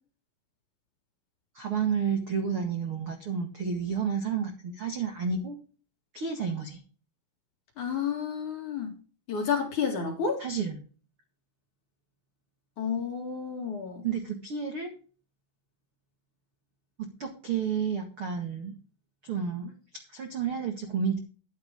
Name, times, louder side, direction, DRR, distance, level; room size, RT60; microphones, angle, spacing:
voice 1, 1.5-5.6 6.1-6.8 10.4-10.8 14.0-14.9 17.0-18.7 19.2-19.8 20.1-21.2, right 6 dB, 60° right, 4 dB, 1.4 m, -31 dB
voice 2, 7.8-8.9 9.3-10.4 12.8-14.0, left 6 dB, 50° left, 3 dB, 2.8 m, -30 dB
13.5 x 10.5 x 3.7 m, 0.36 s
omnidirectional pair, 5.6 m